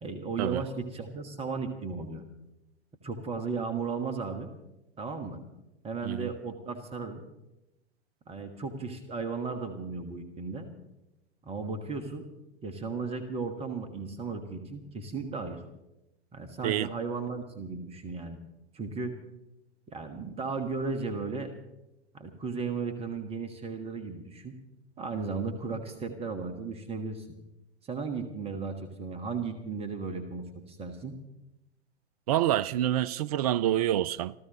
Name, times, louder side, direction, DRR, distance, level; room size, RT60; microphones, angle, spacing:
voice 1, 0.0-2.2 3.0-4.5 5.0-5.4 5.8-7.2 8.3-10.7 11.4-12.2 12.6-15.6 16.3-18.4 18.7-19.2 19.9-21.5 22.1-24.5 25.0-27.3 27.8-31.1, right 4 dB, 15° right, 1.5 m, -35 dB
voice 2, 32.3-34.3, right 12 dB, 35° right, 0.4 m, -27 dB
28.5 x 14.5 x 3.1 m
figure-of-eight pair, 100°, 34 cm